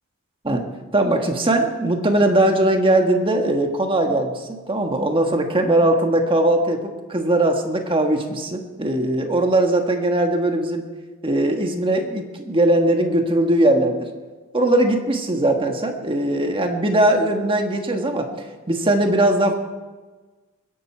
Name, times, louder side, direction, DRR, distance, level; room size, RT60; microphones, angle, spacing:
voice 1, 0.4-10.9 11.2-14.1 14.5-18.3 18.7-19.5, right 1 dB, 25° right, 4 dB, 1.5 m, -20 dB
21.0 x 11.0 x 4.5 m, 1.3 s
head